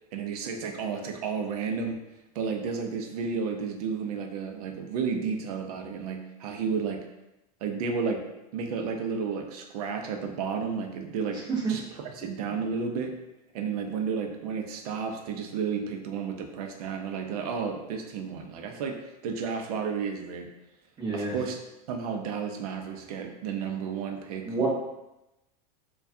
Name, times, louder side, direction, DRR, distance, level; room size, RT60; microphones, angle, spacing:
voice 1, 0.1-2.0 2.3-7.0 7.6-8.2 8.5-13.2 13.5-20.5 21.1-21.6 21.9-24.7, right 5 dB, 70° right, 4 dB, 0.6 m, -32 dB
voice 2, 21.0-21.3 24.4-24.7, right 4 dB, 20° right, -6 dB, 1.0 m, -28 dB
4.5 x 2.3 x 2.6 m, 0.94 s
supercardioid pair, 175°, 20 cm